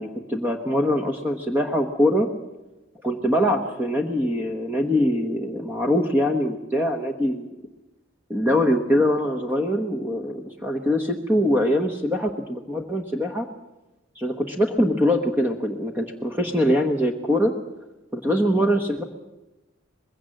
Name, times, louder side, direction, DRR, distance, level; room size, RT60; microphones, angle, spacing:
voice 1, 0.0-2.3 3.0-7.5 8.3-13.5 14.2-17.5 18.1-19.0, equal, 10° right, 4 dB, 1.1 m, -23 dB
21.0 x 16.5 x 7.8 m, 1.0 s
head